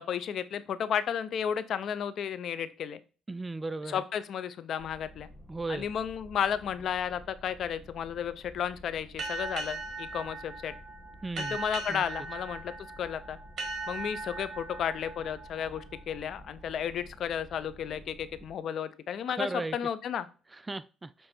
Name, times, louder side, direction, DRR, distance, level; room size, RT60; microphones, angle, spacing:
voice 1, 0.0-3.0 3.9-5.3 5.7-10.7 11.4-13.4 13.9-20.3, left 8 dB, 60° left, 0.5 m, -33 dB
voice 2, 3.3-4.0 5.5-5.9 11.2-11.6 11.9-12.0 19.4-19.8 20.7-21.1, right 2 dB, 20° right, 0.3 m, -35 dB
sound 1, 4.8-18.5, equal, 10° left, 1.6 m, -52 dB
sound 2, 9.2-16.5, right 3 dB, 55° right, 1.6 m, -39 dB
6.8 x 3.2 x 4.4 m
cardioid pair, 90°, 0 cm